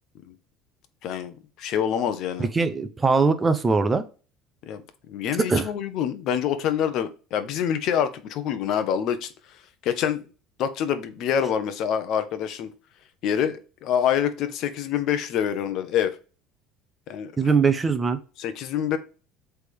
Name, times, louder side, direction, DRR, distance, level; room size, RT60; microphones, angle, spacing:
voice 1, 1.0-2.5 4.6-10.2 10.6-12.7 13.2-16.2 17.1-17.3 18.4-19.0, left 9 dB, 55° left, 11 dB, 0.8 m, -26 dB
voice 2, 2.4-4.0 5.5-5.7 17.4-18.2, right 4 dB, 15° right, 10 dB, 0.6 m, -21 dB
8.0 x 3.5 x 3.4 m, 0.35 s
cardioid pair, 155°, 0 cm